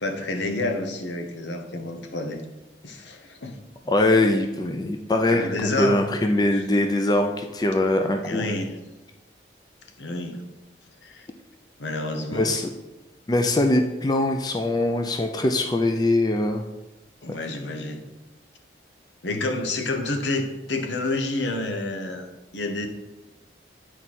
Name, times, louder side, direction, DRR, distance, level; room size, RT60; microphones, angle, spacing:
voice 1, 0.0-2.5 2.8-3.6 5.3-6.1 6.5-6.6 8.2-8.8 10.0-10.4 11.0-11.3 11.8-12.5 17.2-18.0 19.2-22.3 22.5-22.9, left 2 dB, 85° left, 5 dB, 1.0 m, -29 dB
voice 2, 3.9-5.5 5.8-8.5 12.3-12.7 13.3-16.6, left 1 dB, 20° left, 4 dB, 0.4 m, -22 dB
9.2 x 4.5 x 4.2 m, 1.1 s
head